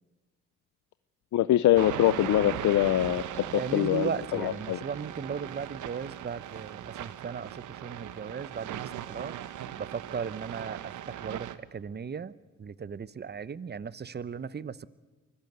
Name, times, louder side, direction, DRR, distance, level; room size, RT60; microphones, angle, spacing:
voice 1, 1.3-3.4 3.7-4.8, left 13 dB, 75° left, 14 dB, 0.6 m, -24 dB
sound 1, 1.8-11.6, right 11 dB, 85° right, 1.0 m, -39 dB
voice 2, 3.5-7.5 7.8-8.8 9.1-9.4 9.8-10.8 11.1-12.3 12.6-14.9, right 6 dB, 35° right, 18 dB, 0.8 m, -36 dB
24.5 x 16.0 x 8.0 m, 1.2 s
cardioid pair, 70°, 30 cm